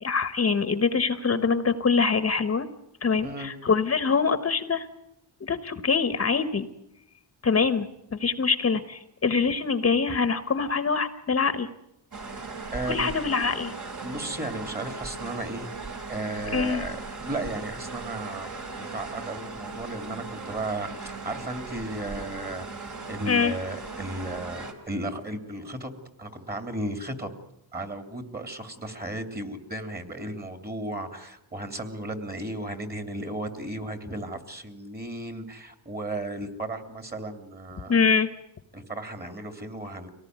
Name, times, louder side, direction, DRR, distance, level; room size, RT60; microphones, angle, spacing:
voice 1, 0.0-2.7 3.0-4.9 5.4-6.7 7.4-7.9 8.1-11.7 12.9-13.7 16.5-16.8 23.3-23.5 37.9-38.3, left 5 dB, 35° left, 11 dB, 1.2 m, -24 dB
voice 2, 3.2-3.5 12.7-13.1 14.0-15.7 16.1-18.5 18.8-22.7 23.1-25.9 26.2-27.3 27.7-38.0 38.7-40.1, right 1 dB, 25° right, 7 dB, 3.1 m, -35 dB
sound 1, 12.1-24.7, right 3 dB, 45° right, 4.0 m, -38 dB
24.5 x 18.5 x 9.5 m, 0.83 s
cardioid pair, 115°, 41 cm